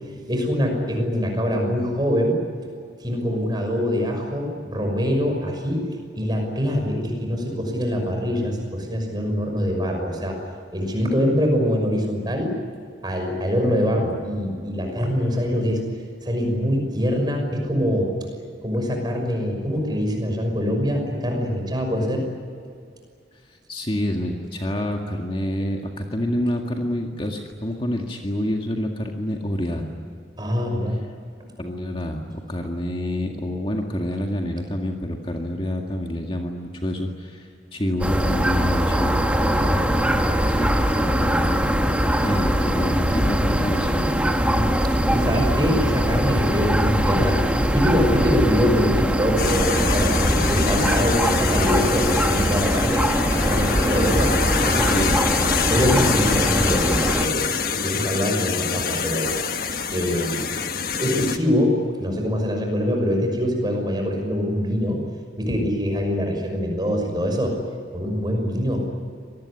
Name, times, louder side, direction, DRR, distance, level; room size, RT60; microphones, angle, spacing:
voice 1, 0.3-2.3 3.0-5.8 6.2-10.4 10.7-12.5 13.0-15.8 16.2-18.1 18.6-22.2 30.4-31.0 44.4-47.4 47.7-54.3 54.6-55.3 55.7-57.4 57.7-59.3 59.9-60.4 61.0-65.0 65.4-67.6 67.9-68.8, equal, 25° right, 3 dB, 5.9 m, -24 dB
voice 2, 23.7-29.9 31.6-39.9 40.4-44.1 54.8-55.2 55.7-55.9, left 1 dB, 30° left, 2 dB, 2.0 m, -28 dB
sound 1, 38.0-57.3, equal, 5° right, 1.7 m, -21 dB
sound 2, 49.4-61.4, left 6 dB, 50° left, 1.4 m, -26 dB
25.5 x 19.5 x 9.9 m, 2.2 s
head